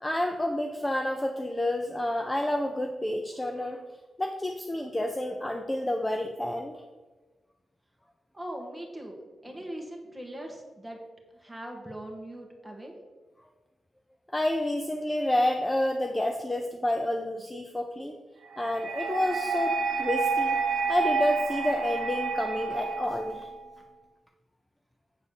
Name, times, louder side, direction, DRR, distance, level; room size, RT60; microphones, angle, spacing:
voice 1, 0.0-3.8 4.2-6.8 14.3-18.2 18.6-20.6 20.9-23.5, left 1 dB, 10° left, 4 dB, 0.5 m, -29 dB
voice 2, 8.3-9.2 9.4-11.0 11.4-12.9, right 1 dB, 5° right, 0 dB, 1.4 m, -40 dB
sound 1, 18.5-23.6, right 4 dB, 85° right, 0.9 m, -29 dB
8.1 x 4.0 x 6.9 m, 1.3 s
wide cardioid pair, 160°, 0 cm